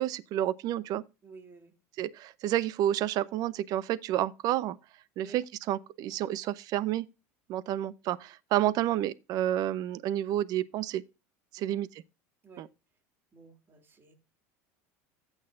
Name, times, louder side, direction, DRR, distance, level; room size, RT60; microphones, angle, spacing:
voice 1, 0.0-1.0 2.0-4.8 5.2-7.1 7.5-11.0 11.5-11.9 12.6-12.7, right 12 dB, 55° right, 0.7 m, -30 dB
voice 2, 1.2-1.7 5.2-5.4 11.6-11.8 12.4-12.6 13.3-14.1, right 4 dB, 30° right, 2.6 m, -52 dB
15.0 x 6.4 x 2.5 m
supercardioid pair, 105°, 8 cm